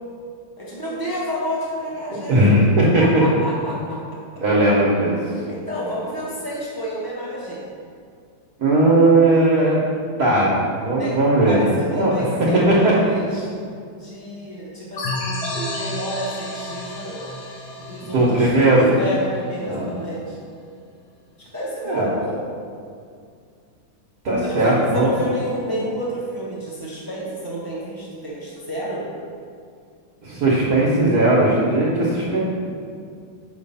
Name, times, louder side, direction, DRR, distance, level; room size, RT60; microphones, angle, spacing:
voice 1, 0.6-2.5 2.8-4.0 5.5-7.6 11.0-11.2 11.5-13.5 13.9-17.2 17.8-20.4 21.4-22.4 24.4-29.1, equal, 25° right, -7 dB, 0.5 m, -30 dB
voice 2, 2.3-3.0 4.4-5.2 8.6-9.8 10.2-12.1 12.7-12.9 18.0-18.9 19.6-19.9 21.8-22.1 24.2-25.2 25.7-25.8 30.2-32.4, right 1 dB, 55° right, -6 dB, 1.4 m, -17 dB
sound 1, 15.0-19.4, left 1 dB, 60° left, 1.5 m, -31 dB
6.9 x 3.2 x 5.4 m, 2.2 s
omnidirectional pair, 2.1 m